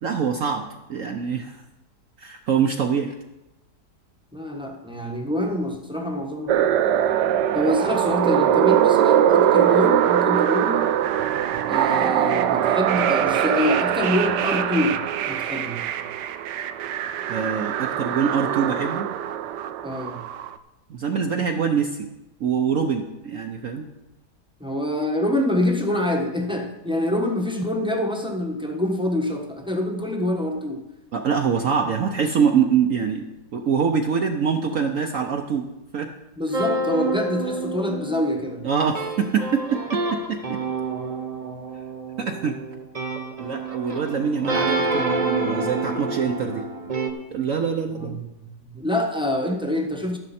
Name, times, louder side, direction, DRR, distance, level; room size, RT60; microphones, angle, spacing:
voice 1, 0.0-1.6 2.2-3.1 17.3-19.1 20.9-22.1 22.4-23.9 31.1-35.6 35.9-36.1 38.6-39.8 40.3-40.6 42.2-42.6 43.4-46.6 47.3-48.2, right 6 dB, 60° right, 3 dB, 1.0 m, -24 dB
voice 2, 4.3-6.7 7.5-10.9 11.7-15.8 19.8-20.2 24.6-30.8 36.4-38.6 47.9-50.2, left 1 dB, 5° right, 2 dB, 1.0 m, -26 dB
sound 1, 6.5-20.5, right 10 dB, 85° right, 1.2 m, -22 dB
sound 2, 36.5-47.1, right 3 dB, 25° right, 1.0 m, -28 dB
12.0 x 10.5 x 4.3 m, 0.97 s
omnidirectional pair, 1.9 m